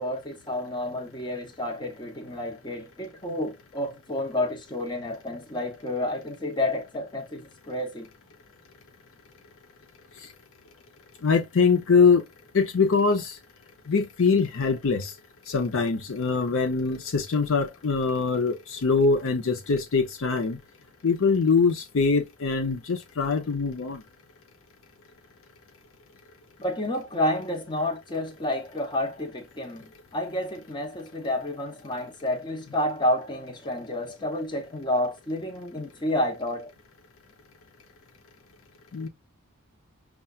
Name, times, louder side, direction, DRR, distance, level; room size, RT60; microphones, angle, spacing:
voice 1, 0.0-8.1 26.6-29.9 30.1-36.7, left 1 dB, 20° left, 0.8 m, -30 dB
voice 2, 11.2-12.2 12.5-13.3 13.9-15.1 15.5-20.6 21.0-24.0 38.9-39.1, left 4 dB, 65° left, 0.6 m, -23 dB
5.6 x 2.3 x 2.3 m
head